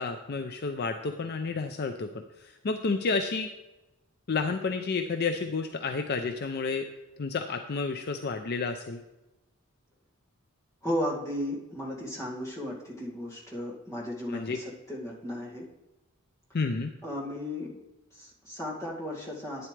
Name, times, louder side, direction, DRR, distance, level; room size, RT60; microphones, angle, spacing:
voice 1, 0.0-2.1 2.4-3.5 4.3-6.9 7.2-9.0 14.3-14.6 16.5-16.9, left 4 dB, 50° left, 7 dB, 0.5 m, -30 dB
voice 2, 10.8-15.7 17.0-17.8 18.1-19.7, left 1 dB, 15° left, -5 dB, 2.1 m, -35 dB
11.0 x 9.5 x 3.3 m, 1.0 s
head